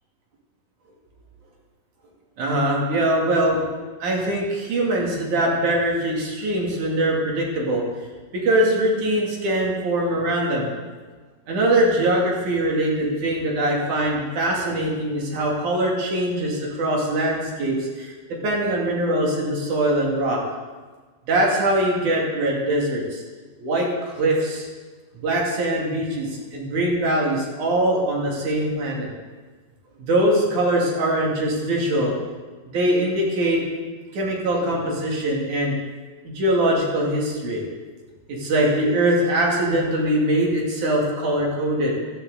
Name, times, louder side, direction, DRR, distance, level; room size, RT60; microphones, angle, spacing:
voice 1, 2.4-3.6 4.0-7.8 8.3-10.7 11.5-20.4 21.3-23.2 23.6-24.7 25.2-29.1 30.0-32.1 32.7-33.6 34.1-35.8 36.3-37.6 38.3-41.9, right 1 dB, 70° right, -2 dB, 3.9 m, -22 dB
14.5 x 14.5 x 3.9 m, 1.4 s
omnidirectional pair, 3.7 m